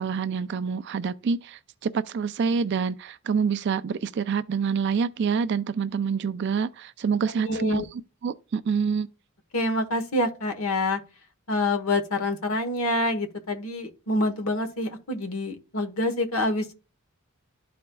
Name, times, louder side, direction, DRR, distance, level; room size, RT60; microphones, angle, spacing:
voice 1, 0.0-9.1, right 6 dB, 55° right, 0.4 m, -27 dB
voice 2, 7.5-7.8 9.5-11.0 11.5-16.7, left 2 dB, 90° left, 1.1 m, -26 dB
12.5 x 4.2 x 2.3 m
head